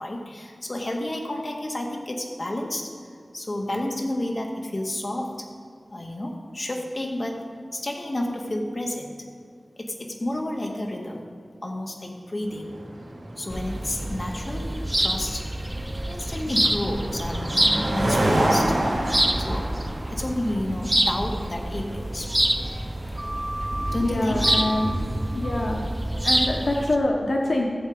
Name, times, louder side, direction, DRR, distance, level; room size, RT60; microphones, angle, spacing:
voice 1, 0.0-2.9 3.3-5.5 5.9-7.4 7.7-9.2 9.8-11.3 11.6-12.7 13.4-15.5 16.1-18.8 19.4-19.7 20.1-22.3 23.9-24.4, left 1 dB, 40° left, 1 dB, 1.7 m, -30 dB
sound 1, 12.5-26.0, right 1 dB, 75° right, 3.0 m, -30 dB
sound 2, 13.5-27.0, right 1 dB, 15° right, 0.6 m, -27 dB
voice 2, 24.0-24.9 25.3-25.9 26.2-27.6, left 1 dB, 70° left, 0 dB, 1.1 m, -25 dB
15.5 x 7.5 x 5.1 m, 2.3 s
wide cardioid pair, 70°, 0 cm